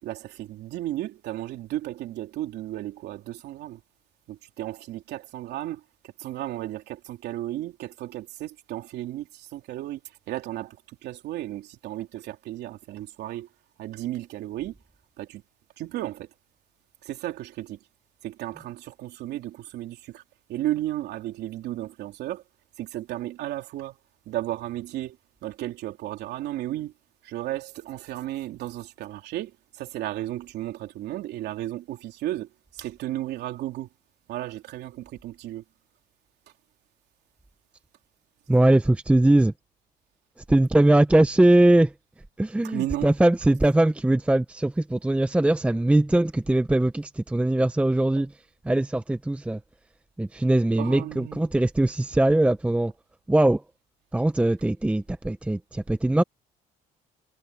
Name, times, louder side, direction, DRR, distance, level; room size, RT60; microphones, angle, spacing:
voice 1, 0.0-3.8 4.3-10.0 10.3-13.5 13.8-14.7 15.2-15.4 15.8-16.3 17.0-17.8 18.2-20.2 20.5-22.4 22.8-24.0 24.2-25.2 25.4-26.9 27.2-33.9 34.3-35.6 42.6-43.1 50.8-51.5, right 14 dB, 80° right, 3.3 m, -34 dB
voice 2, 38.5-39.5 40.5-41.9 42.4-48.3 48.6-49.6 50.2-52.9 53.3-53.6 54.1-56.2, right 1 dB, 5° right, 0.7 m, -21 dB
cardioid pair, 110°, 17 cm